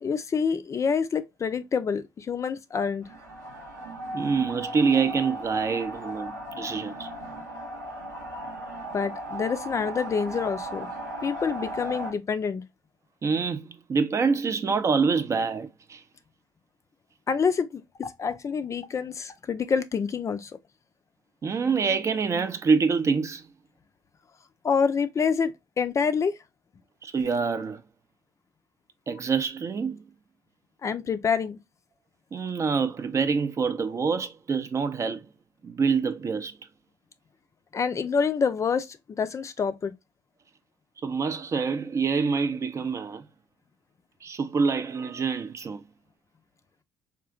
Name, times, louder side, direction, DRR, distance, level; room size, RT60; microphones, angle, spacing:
voice 1, 0.0-3.1 8.9-10.9 11.2-12.6 17.3-20.5 24.6-26.4 30.8-31.6 37.7-39.9, left 6 dB, 35° left, 0.4 m, -27 dB
sound 1, 3.0-12.1, right 1 dB, 90° right, 0.7 m, -37 dB
voice 2, 4.1-7.1 13.2-16.0 21.4-23.4 27.0-27.8 29.1-30.0 32.3-35.3 35.6-36.5 41.0-43.2 44.2-45.8, right 5 dB, 30° right, 0.4 m, -26 dB
3.6 x 2.4 x 2.3 m
figure-of-eight pair, 50°, 9 cm